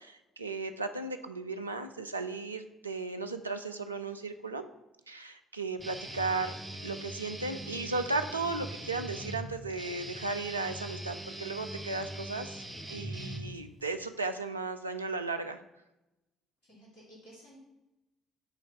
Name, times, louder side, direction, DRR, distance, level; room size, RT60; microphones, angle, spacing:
voice 1, 0.0-4.6 5.1-6.5 6.8-12.6 12.9-15.6, right 3 dB, 90° right, 7 dB, 0.4 m, -35 dB
Guitar, 5.8-13.8, right 1 dB, 15° right, 1.2 m, -41 dB
voice 2, 16.6-17.6, right 1 dB, 65° left, -7 dB, 2.8 m, -54 dB
8.8 x 3.2 x 5.7 m, 0.94 s
figure-of-eight pair, 50°, 0 cm